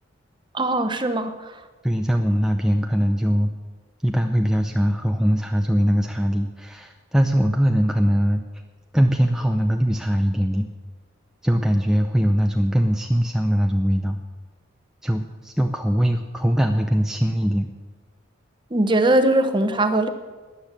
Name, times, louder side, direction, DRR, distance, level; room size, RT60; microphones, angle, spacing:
voice 1, 0.5-1.5 18.7-20.1, right 1 dB, 25° right, 9 dB, 0.9 m, -20 dB
voice 2, 1.8-3.6 4.0-8.5 8.9-10.7 11.4-14.2 15.0-17.7, equal, 5° right, 3 dB, 0.5 m, -21 dB
13.5 x 10.0 x 7.3 m, 1.4 s
head